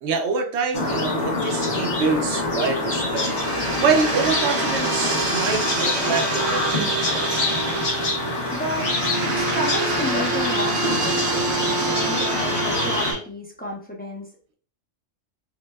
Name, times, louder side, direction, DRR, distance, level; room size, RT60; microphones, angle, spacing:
voice 1, 0.0-7.5, right 5 dB, 65° right, 4 dB, 0.9 m, -26 dB
sound 1, 0.7-13.1, left 2 dB, 60° left, 1.3 m, -26 dB
sound 2, 2.9-13.1, right 3 dB, 85° right, 1.7 m, -26 dB
voice 2, 8.5-8.9 9.2-14.3, equal, 10° left, -2 dB, 0.5 m, -31 dB
5.7 x 2.2 x 2.2 m, 0.43 s
omnidirectional pair, 1.4 m